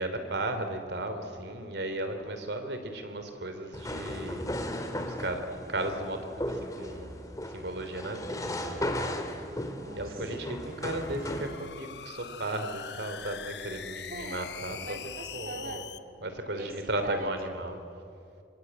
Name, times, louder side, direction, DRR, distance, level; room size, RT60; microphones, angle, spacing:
voice 1, 0.0-7.2 7.5-9.2 10.0-14.8 15.3-15.8 16.2-17.8, right 1 dB, 70° right, 7 dB, 3.2 m, -35 dB
sound 1, 3.7-11.6, left 1 dB, 20° left, 2.2 m, -36 dB
voice 2, 9.5-10.4 14.0-14.4 14.8-15.9 16.6-17.3, right 2 dB, 55° right, 4 dB, 3.1 m, -42 dB
sound 2, 10.6-16.0, left 8 dB, 70° left, 0.9 m, -43 dB
26.0 x 23.5 x 9.2 m, 2.5 s
head